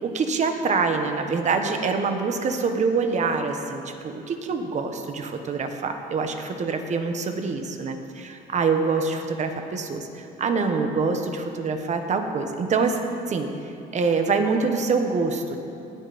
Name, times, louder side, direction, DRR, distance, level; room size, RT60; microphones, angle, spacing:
voice 1, 0.0-13.0 13.3-13.5 13.9-15.6, right 4 dB, 45° right, 6 dB, 1.3 m, -25 dB
18.5 x 9.4 x 4.3 m, 2.7 s
cardioid pair, 110°, 17 cm